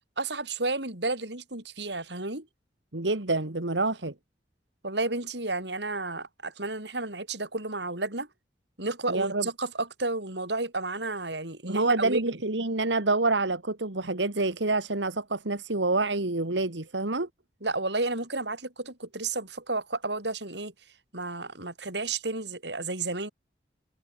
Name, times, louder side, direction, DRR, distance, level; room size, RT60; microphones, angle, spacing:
voice 1, 0.2-2.5 4.8-8.3 8.8-12.3 17.6-20.7 21.1-23.3, right 2 dB, 70° right, 8.0 m, -32 dB
voice 2, 2.9-4.1 9.1-9.5 11.6-17.3, right 2 dB, 85° right, 2.3 m, -27 dB
open air
head